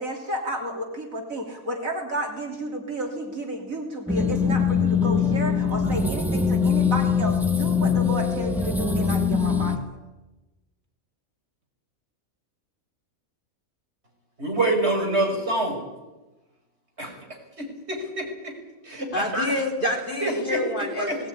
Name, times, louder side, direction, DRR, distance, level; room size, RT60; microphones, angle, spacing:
voice 1, 0.0-9.8, right 1 dB, 75° right, 2 dB, 3.4 m, -32 dB
sound 1, 4.1-9.8, left 5 dB, ahead, 1.4 m, -22 dB
voice 2, 14.4-15.8 17.0-17.1 17.6-18.5 18.8-19.5 20.2-20.3 21.0-21.1, right 2 dB, 50° right, 0 dB, 6.2 m, -26 dB
voice 3, 19.1-21.3, left 1 dB, 35° left, 2 dB, 3.3 m, -27 dB
19.0 x 18.0 x 9.7 m, 1.1 s
omnidirectional pair, 1.4 m